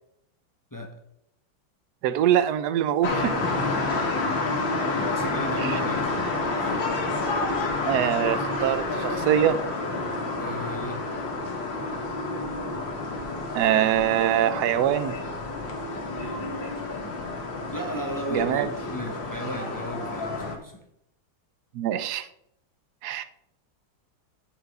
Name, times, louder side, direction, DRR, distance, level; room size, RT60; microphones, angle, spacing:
voice 1, 2.0-3.4 5.6-5.8 7.8-9.6 13.5-15.2 18.3-18.7 21.7-22.3 23.0-23.2, right 11 dB, 70° right, 13 dB, 1.1 m, -23 dB
sound 1, 3.0-20.5, left 3 dB, 70° left, 2.3 m, -29 dB
voice 2, 3.4-4.1 5.1-6.1 6.5-6.9 10.3-11.0 16.1-17.2 17.7-20.8, equal, 15° left, 2 dB, 0.7 m, -35 dB
7.6 x 7.2 x 4.8 m, 0.74 s
omnidirectional pair, 2.1 m